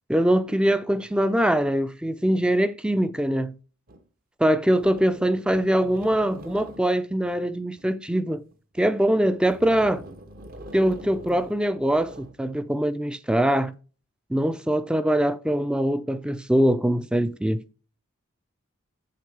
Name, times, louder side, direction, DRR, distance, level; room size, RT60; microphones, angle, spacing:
voice 1, 0.1-3.5 4.4-8.4 8.8-10.0 10.7-13.7 14.3-17.6, right 1 dB, 5° right, 0.3 m, -23 dB
sound 1, 3.9-4.0 4.6-7.9 8.5-9.0 9.4-12.4, right 1 dB, 40° right, 0.7 m, -44 dB
8.4 x 6.6 x 3.2 m
head